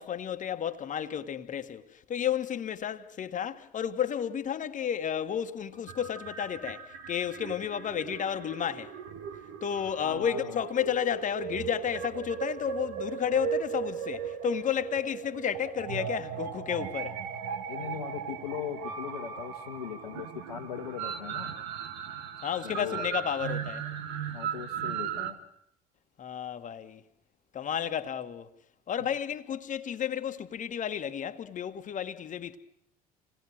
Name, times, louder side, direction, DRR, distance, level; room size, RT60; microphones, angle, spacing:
voice 1, 0.0-8.9 9.6-17.2 22.4-23.9 26.2-27.0 27.5-28.5 28.9-32.6, left 9 dB, 40° left, 1.6 m, -32 dB
sound 1, 5.8-25.3, right 7 dB, 65° right, 1.7 m, -37 dB
voice 2, 10.0-10.6 17.7-21.5 22.6-23.0 24.3-25.4, left 8 dB, 80° left, 1.8 m, -39 dB
27.5 x 19.0 x 6.5 m
figure-of-eight pair, 60°, 20 cm